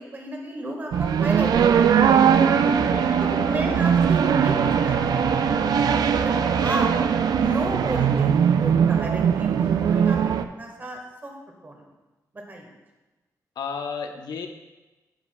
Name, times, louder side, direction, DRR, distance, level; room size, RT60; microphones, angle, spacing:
voice 1, 0.0-2.4 3.2-5.8 6.2-6.3 6.6-6.9 7.4-10.2 10.5-11.3 11.6-11.8 12.5-12.7, right 1 dB, 30° right, 1 dB, 1.5 m, -33 dB
sound 1, 0.9-10.4, right 7 dB, 75° right, 0.4 m, -20 dB
Wind instrument woodwind instrument, 2.4-7.6, left 3 dB, 40° left, 1.0 m, -36 dB
voice 2, 2.7-3.2 13.6-14.5, left 5 dB, 90° left, 5 dB, 0.8 m, -33 dB
10.0 x 8.4 x 2.3 m, 1.1 s
wide cardioid pair, 150°, 7 cm